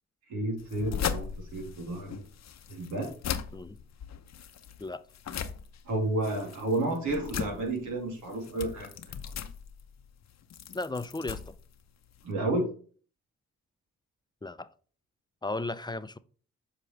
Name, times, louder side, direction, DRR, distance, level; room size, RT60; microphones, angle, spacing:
voice 1, 0.3-2.2 2.7-3.1 5.8-8.9 12.2-12.7, right 2 dB, 85° right, 2.8 m, -31 dB
sound 1, 0.6-12.3, left 8 dB, 65° left, 0.8 m, -39 dB
voice 2, 10.7-11.6 14.4-14.7 15.4-16.2, left 2 dB, 15° left, 0.6 m, -35 dB
7.7 x 5.1 x 3.3 m
supercardioid pair, 55°, 29 cm